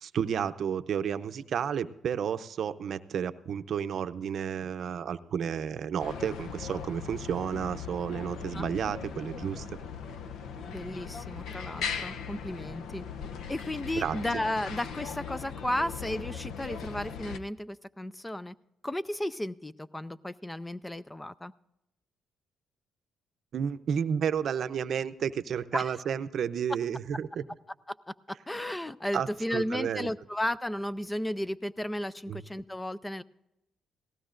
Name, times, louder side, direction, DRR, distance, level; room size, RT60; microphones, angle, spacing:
voice 1, 0.0-9.8 14.0-14.2 23.5-27.4 29.1-30.1 32.3-32.4, right 8 dB, 60° right, 11 dB, 0.6 m, -31 dB
sound 1, 6.0-17.4, left 6 dB, 80° left, 0.7 m, -39 dB
voice 2, 10.7-13.0 13.5-18.5 18.8-21.5 25.7-26.0 27.9-33.2, left 1 dB, 10° left, 17 dB, 0.4 m, -34 dB
18.0 x 15.5 x 2.5 m, 0.87 s
cardioid pair, 90°, 0 cm